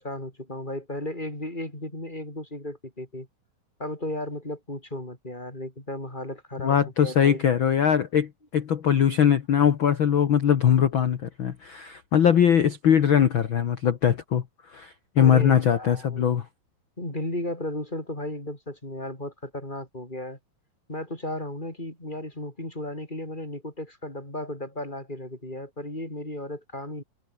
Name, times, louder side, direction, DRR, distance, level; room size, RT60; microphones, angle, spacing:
voice 1, 0.0-3.3 3.8-7.5 15.2-16.3 17.0-20.4 20.9-27.0, left 1 dB, 10° left, 6.6 m, -35 dB
voice 2, 6.6-14.4 14.7-16.5, left 8 dB, 85° left, 1.1 m, -21 dB
omnidirectional pair, 4.2 m